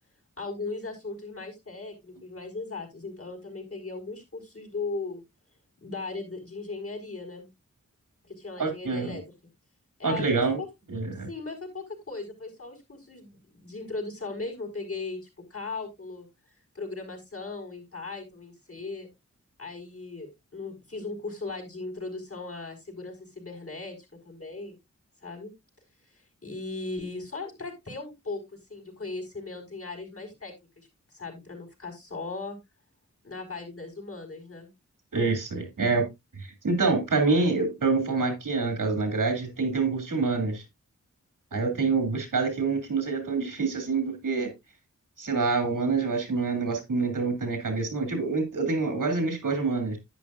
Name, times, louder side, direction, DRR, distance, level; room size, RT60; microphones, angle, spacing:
voice 1, 0.4-5.2 5.8-7.5 8.2-9.2 10.0-10.7 11.3-15.2 15.5-16.3 16.7-19.1 19.6-24.0 24.2-24.8 25.2-25.5 26.1-28.4 28.7-32.6 33.2-34.7 41.5-41.9, left 3 dB, 45° left, 4.7 m, -38 dB
voice 2, 8.6-9.2 10.0-10.6 10.9-11.3 35.1-36.1 36.4-40.6 41.5-44.5 45.2-50.0, right 4 dB, 90° right, 2.7 m, -26 dB
10.5 x 8.8 x 2.5 m
cardioid pair, 45°, 31 cm